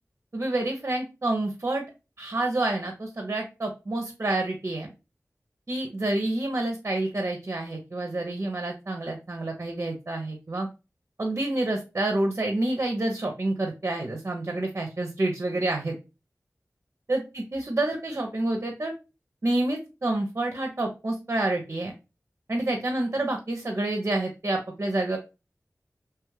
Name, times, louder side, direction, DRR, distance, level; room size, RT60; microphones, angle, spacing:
voice 1, 0.3-1.8 2.2-4.9 5.7-10.7 11.2-16.0 17.1-18.9 19.4-21.9 22.5-25.2, right 2 dB, 45° right, 3 dB, 0.6 m, -28 dB
2.9 x 2.3 x 3.1 m, 0.28 s
wide cardioid pair, 60°, 6 cm